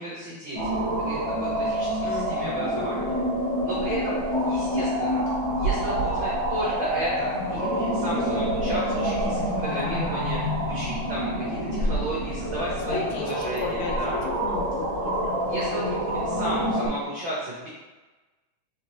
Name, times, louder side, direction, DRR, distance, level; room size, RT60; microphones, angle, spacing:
voice 1, 0.0-3.2 3.6-5.2 5.6-14.2 15.4-17.7, right 1 dB, 80° right, -7 dB, 1.1 m, -34 dB
sound 1, 0.5-16.9, equal, 45° left, 1.4 m, -27 dB
voice 2, 2.0-2.9 9.7-10.3 12.9-15.5, left 5 dB, 80° left, 0 dB, 1.7 m, -35 dB
4.4 x 3.2 x 2.9 m, 1.2 s
omnidirectional pair, 3.3 m